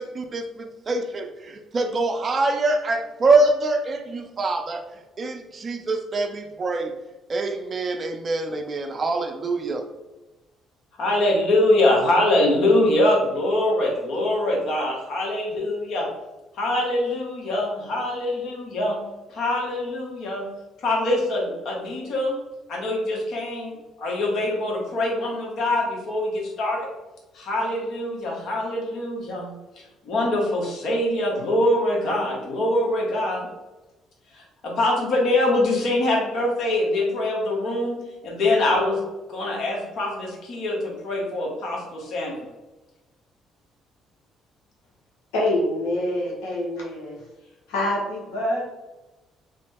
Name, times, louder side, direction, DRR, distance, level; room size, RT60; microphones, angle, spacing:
voice 1, 0.0-4.8 5.2-6.9 7.3-9.8, right 2 dB, 40° right, 5 dB, 0.4 m, -24 dB
voice 2, 11.0-16.1 16.5-19.0 19.3-20.5 20.8-22.4 22.7-26.9 27.3-33.5 34.3-39.0 39.3-42.4, left 1 dB, 65° left, -1 dB, 1.0 m, -24 dB
voice 3, 45.3-47.2 47.7-48.6, left 1 dB, 90° left, -4 dB, 0.7 m, -25 dB
3.0 x 2.0 x 3.3 m, 1.1 s
supercardioid pair, 70°, 0 cm